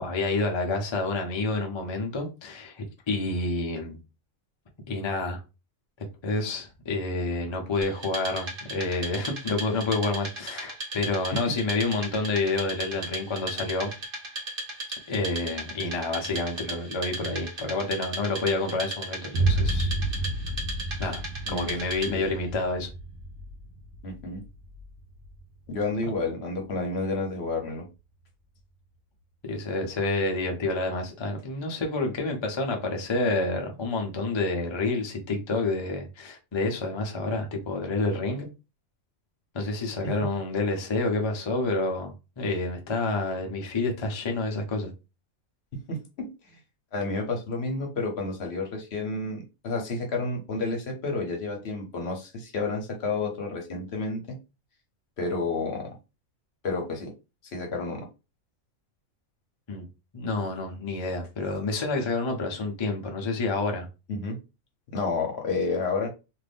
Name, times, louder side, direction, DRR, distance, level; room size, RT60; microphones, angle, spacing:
voice 1, 0.0-4.0 4.9-5.4 6.2-13.9 15.1-19.9 21.0-21.2 21.5-22.9 29.4-38.5 39.5-44.9 59.7-59.8 60.1-63.9, left 2 dB, 40° left, 3 dB, 0.4 m, -29 dB
Wood, 7.8-22.4, right 2 dB, 45° right, 1.2 m, -37 dB
Boom, 19.3-27.2, right 2 dB, 70° right, 0.9 m, -31 dB
voice 2, 24.0-24.4 25.7-27.9 40.0-40.1 45.9-46.3 46.9-54.4 55.2-55.9 56.6-57.1 57.4-58.1 64.1-64.4 64.9-66.1, left 3 dB, 55° left, 2 dB, 0.9 m, -30 dB
2.6 x 2.5 x 3.4 m, 0.28 s
omnidirectional pair, 1.4 m